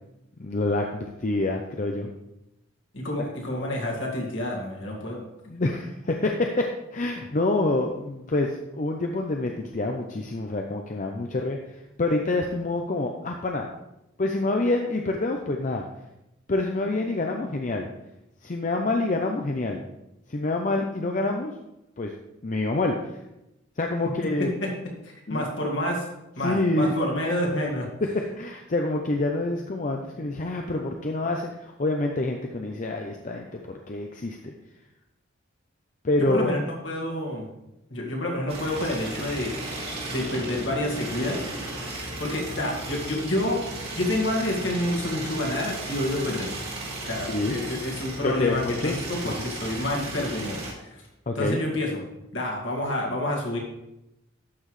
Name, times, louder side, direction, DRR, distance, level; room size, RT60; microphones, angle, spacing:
voice 1, 0.4-2.1 5.5-11.6 12.0-13.7 14.2-15.9 16.5-17.9 18.4-19.8 20.3-21.5 22.0-22.1 22.4-23.2 23.8-24.5 25.3-25.5 26.4-26.9 28.4-34.5 36.0-36.5 47.3-47.6 48.2-48.9 49.2-49.4 51.3-51.6, left 2 dB, 40° left, 2 dB, 0.6 m, -27 dB
voice 2, 2.9-5.2 24.6-24.7 25.3-26.1 26.4-27.9 36.3-37.4 37.9-39.5 40.1-41.5 42.2-43.6 44.0-46.5 47.0-51.0 51.4-52.0 52.3-53.6, left 1 dB, 65° left, -1 dB, 2.1 m, -28 dB
sound 1, 38.5-50.7, right 2 dB, 50° right, 2.6 m, -35 dB
12.0 x 5.9 x 3.2 m, 0.90 s
head